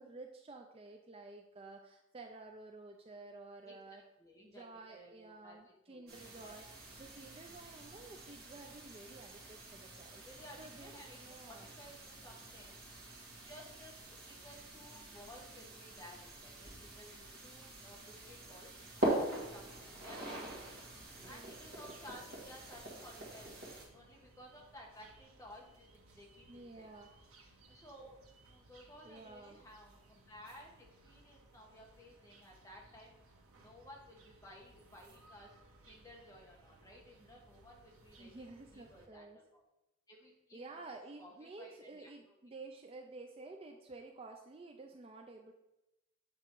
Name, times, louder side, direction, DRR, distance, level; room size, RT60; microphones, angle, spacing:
voice 1, 0.0-4.0 4.4-6.7 7.0-10.3 10.6-11.7 21.1-21.5 26.5-27.1 29.0-29.6 38.2-39.4 40.5-45.5, right 3 dB, 25° right, 4 dB, 0.4 m, -52 dB
voice 2, 3.6-6.6 10.2-13.1 13.4-20.6 21.1-26.9 27.7-33.1 33.6-35.6 35.9-38.4 38.7-39.6 40.1-42.1, equal, 15° left, -1 dB, 1.1 m, -56 dB
sound 1, 6.1-23.9, right 1 dB, 45° right, 1.9 m, -44 dB
sound 2, 19.5-39.1, right 2 dB, 90° right, 1.1 m, -63 dB
7.8 x 3.5 x 4.6 m, 0.95 s
head